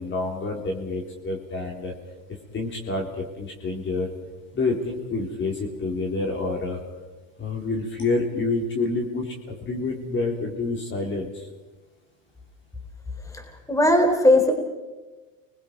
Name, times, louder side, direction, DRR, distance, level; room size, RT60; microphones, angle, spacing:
voice 1, 0.0-1.9 2.5-4.1 4.5-6.8 7.4-11.4, left 3 dB, 30° left, 1 dB, 3.5 m, -28 dB
voice 2, 13.7-14.5, left 1 dB, 10° left, 3 dB, 3.8 m, -17 dB
29.0 x 21.0 x 4.5 m, 1.2 s
supercardioid pair, 115°, 39 cm